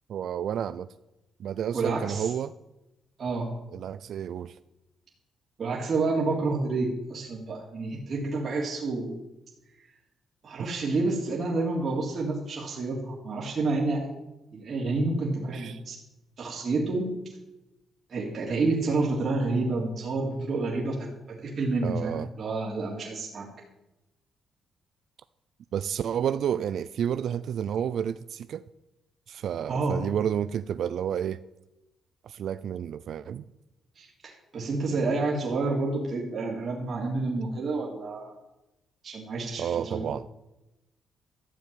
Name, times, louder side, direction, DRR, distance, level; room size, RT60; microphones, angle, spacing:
voice 1, 0.1-0.9 1.4-2.5 3.7-4.6 15.5-15.8 20.4-20.5 21.8-22.3 25.7-28.6 29.3-31.4 32.2-33.4 39.6-40.3, right 9 dB, 60° right, 14 dB, 0.4 m, -30 dB
voice 2, 1.7-2.3 3.2-3.5 5.6-9.2 10.4-14.1 14.5-16.0 16.4-17.1 18.1-23.5 29.7-30.0 34.0-38.4 39.0-40.1, right 3 dB, 45° right, -2 dB, 3.0 m, -29 dB
13.5 x 7.7 x 9.1 m, 0.96 s
cardioid pair, 135°, 0 cm